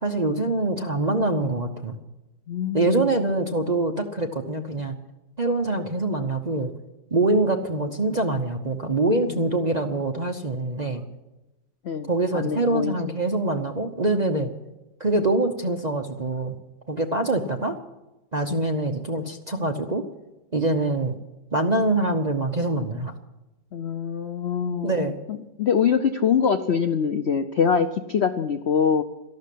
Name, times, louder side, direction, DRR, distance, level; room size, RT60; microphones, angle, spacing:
voice 1, 0.0-2.0 2.7-4.9 5.4-6.7 7.1-11.0 12.1-14.5 15.0-16.5 16.9-17.8 18.3-20.0 20.5-21.2 21.5-23.1 24.8-25.2, right 2 dB, 35° right, 4 dB, 0.7 m, -24 dB
voice 2, 2.5-3.1 9.3-9.4 11.8-12.1 12.3-12.9 18.5-18.6 23.7-29.0, left 7 dB, 60° left, 8 dB, 0.6 m, -24 dB
13.5 x 12.0 x 8.4 m, 1.0 s
omnidirectional pair, 2.0 m